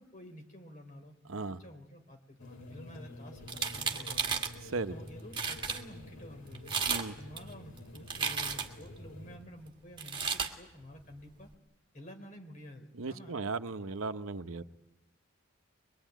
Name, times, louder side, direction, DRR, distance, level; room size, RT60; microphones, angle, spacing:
voice 1, 0.0-1.2 1.6-4.4 4.9-6.8 7.2-11.5 11.9-13.4 14.6-14.7, equal, 40° left, 3.4 m, -50 dB
voice 2, 1.3-1.6 4.6-4.9 6.9-7.1 12.9-14.6, right 3 dB, 85° right, 0.9 m, -36 dB
sound 1, 2.4-9.4, left 1 dB, 85° left, 4.4 m, -49 dB
sound 2, 3.4-4.5 5.1-5.2 5.3-5.8 6.5-7.1 7.4-8.8 10.0-10.5, right 5 dB, 25° right, 1.8 m, -33 dB
23.5 x 22.0 x 9.2 m
head